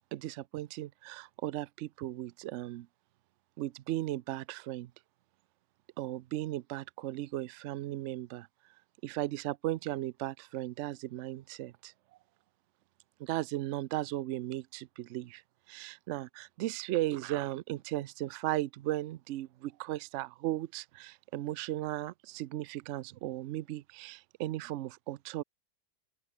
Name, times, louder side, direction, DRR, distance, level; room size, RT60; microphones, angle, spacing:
voice 1, 0.1-2.9 3.6-4.9 6.0-8.5 9.0-11.9 13.2-15.4 15.7-25.4, right 15 dB, 85° right, 0.6 m, -36 dB
open air
omnidirectional pair, 1.8 m